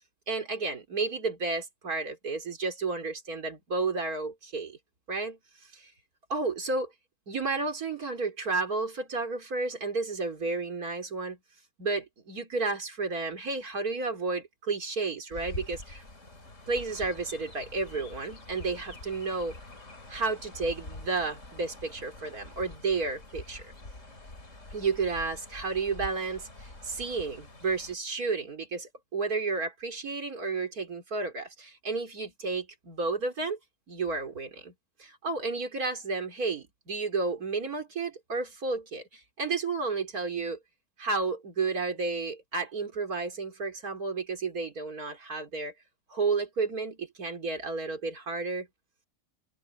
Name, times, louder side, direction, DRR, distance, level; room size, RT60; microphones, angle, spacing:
voice 1, 0.3-4.8 5.1-5.4 5.7-5.9 6.3-6.9 7.3-11.4 11.8-16.0 16.7-19.6 20.1-23.7 24.7-33.6 33.9-34.7 35.0-40.6 41.0-45.7 46.1-48.7, right 3 dB, 80° right, 4.1 m, -32 dB
Chirp tweet, 15.3-28.0, left 2 dB, 55° left, 4.4 m, -46 dB
omnidirectional pair, 1.5 m